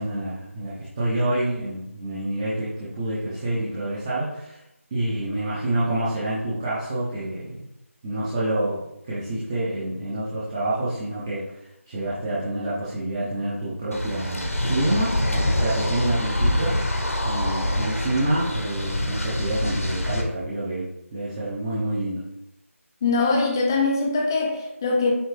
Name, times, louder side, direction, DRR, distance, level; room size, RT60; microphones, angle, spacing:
voice 1, 0.0-4.6 4.9-7.6 8.0-16.8 17.2-22.2, right 1 dB, 20° right, -9 dB, 1.1 m, -27 dB
sound 1, 13.9-20.2, left 1 dB, 75° left, 1.3 m, -25 dB
voice 2, 23.0-25.1, left 3 dB, 15° left, 1 dB, 0.6 m, -22 dB
8.7 x 3.6 x 3.5 m, 0.87 s
figure-of-eight pair, 165°, 8 cm